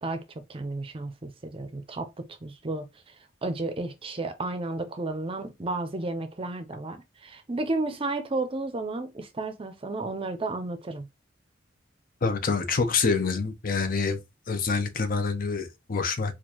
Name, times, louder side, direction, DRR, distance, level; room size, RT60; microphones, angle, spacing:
voice 1, 0.0-2.9 3.4-11.1, right 2 dB, 30° right, 0.5 m, -32 dB
voice 2, 12.2-14.2 14.5-16.3, left 4 dB, 50° left, 0.6 m, -26 dB
4.4 x 2.5 x 2.8 m
head